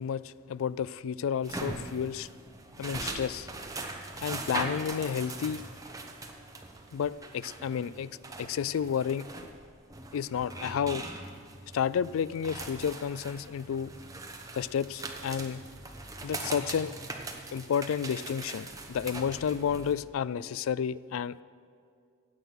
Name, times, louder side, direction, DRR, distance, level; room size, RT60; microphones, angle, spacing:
voice 1, 0.0-2.3 2.8-3.5 4.2-5.6 6.9-8.1 8.4-9.3 10.1-11.0 11.7-13.9 14.5-15.6 16.2-16.9 17.5-21.4, left 7 dB, 75° left, 19 dB, 0.3 m, -31 dB
sound 1, 1.4-19.9, right 2 dB, 15° right, 1.0 m, -41 dB
16.0 x 9.2 x 5.9 m, 2.3 s
head